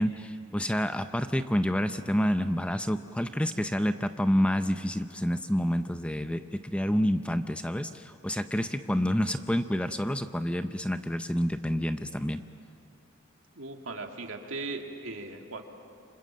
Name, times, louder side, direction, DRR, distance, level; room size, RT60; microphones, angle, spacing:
voice 1, 0.0-12.4, equal, 5° left, 9 dB, 0.5 m, -28 dB
voice 2, 13.6-15.6, right 3 dB, 65° right, 3 dB, 2.4 m, -38 dB
29.0 x 26.0 x 7.5 m, 2.4 s
head